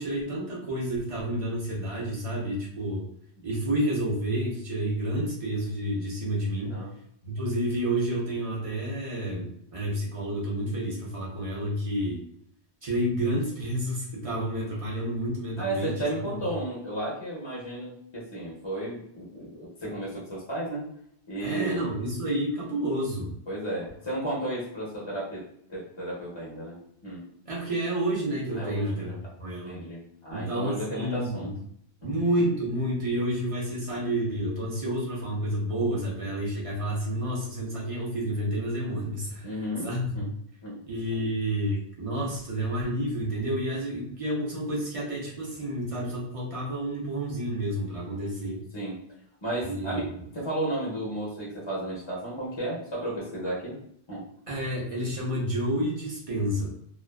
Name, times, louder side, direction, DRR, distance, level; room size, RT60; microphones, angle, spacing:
voice 1, 0.0-3.0 3.4-6.7 7.2-12.2 12.8-16.4 21.4-23.3 27.5-29.8 30.3-31.5 32.0-40.2 40.9-48.6 49.6-50.0 54.5-56.7, right 1 dB, 35° right, -4 dB, 0.7 m, -30 dB
voice 2, 6.6-6.9 15.6-20.9 21.3-21.9 23.5-25.4 25.7-26.8 27.0-27.2 28.6-29.2 29.6-31.5 32.0-32.1 39.4-40.3 40.6-40.8 42.2-42.3 48.7-49.0 49.4-50.0 50.3-53.8 54.1-54.2, right 1 dB, 30° left, -6 dB, 0.6 m, -33 dB
2.3 x 2.3 x 2.2 m, 0.70 s
omnidirectional pair, 1.1 m